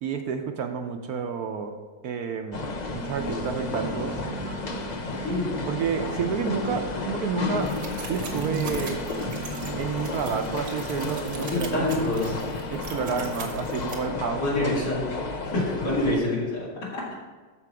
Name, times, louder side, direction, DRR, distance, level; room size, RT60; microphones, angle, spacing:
voice 1, 0.0-1.7 2.0-4.2 5.1-5.3 5.7-7.7 8.1-9.0 9.8-11.9 12.7-14.7 15.5-15.6, right 6 dB, 65° right, 5 dB, 1.1 m, -30 dB
sound 1, 2.5-16.2, left 3 dB, 50° left, 0.5 m, -33 dB
sound 2, 2.9-13.2, right 4 dB, 20° right, 0.9 m, -39 dB
sound 3, 7.6-13.9, right 4 dB, 80° right, 1.9 m, -41 dB
voice 2, 11.3-12.4 14.4-15.0 15.5-17.1, left 2 dB, 70° left, -6 dB, 3.3 m, -27 dB
13.5 x 4.5 x 4.8 m, 1.4 s
omnidirectional pair, 1.9 m